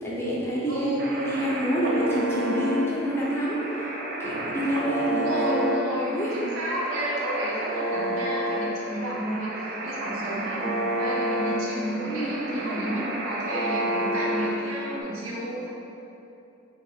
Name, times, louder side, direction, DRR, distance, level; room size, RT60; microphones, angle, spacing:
voice 1, 0.0-3.6 4.2-6.3 12.0-13.0, equal, 10° left, -6 dB, 0.5 m, -28 dB
voice 2, 0.7-1.1 5.1-15.7, right 1 dB, 80° right, -5 dB, 0.9 m, -31 dB
sound 1, 1.0-15.0, right 1 dB, 45° right, 0.5 m, -30 dB
3.8 x 2.9 x 4.1 m, 2.9 s
head